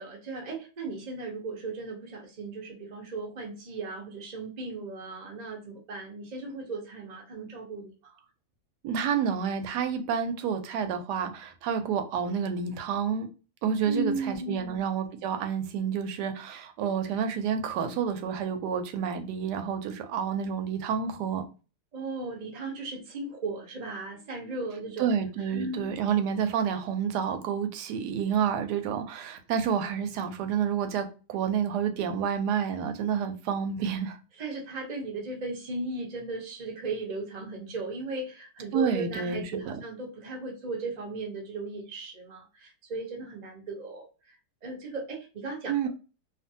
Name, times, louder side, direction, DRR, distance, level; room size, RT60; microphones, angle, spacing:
voice 1, 0.0-8.2 13.8-14.8 21.9-26.0 34.4-44.1 44.6-45.9, right 3 dB, 50° right, 0.5 m, -36 dB
voice 2, 8.8-13.3 13.6-21.4 25.0-34.2 38.7-39.8 45.7-45.9, right 7 dB, 75° right, 1.1 m, -29 dB
2.6 x 2.5 x 2.6 m
omnidirectional pair, 1.9 m